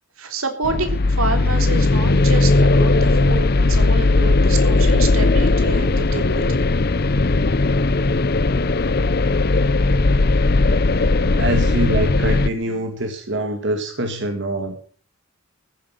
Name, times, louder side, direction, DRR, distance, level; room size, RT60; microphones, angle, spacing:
voice 1, 0.2-6.6, right 3 dB, 80° right, 6 dB, 3.5 m, -28 dB
sound 1, 0.6-12.5, left 2 dB, 45° left, 0.7 m, -17 dB
voice 2, 11.3-14.8, right 1 dB, 55° right, 5 dB, 2.3 m, -24 dB
14.5 x 10.5 x 7.4 m, 0.43 s
head